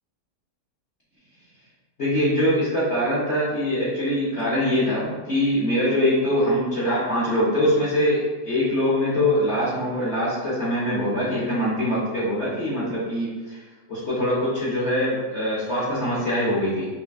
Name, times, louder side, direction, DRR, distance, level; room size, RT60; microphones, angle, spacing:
voice 1, 2.0-13.6 13.9-16.9, left 1 dB, 55° left, -8 dB, 0.8 m, -23 dB
5.8 x 2.1 x 2.3 m, 1.3 s
omnidirectional pair, 1.9 m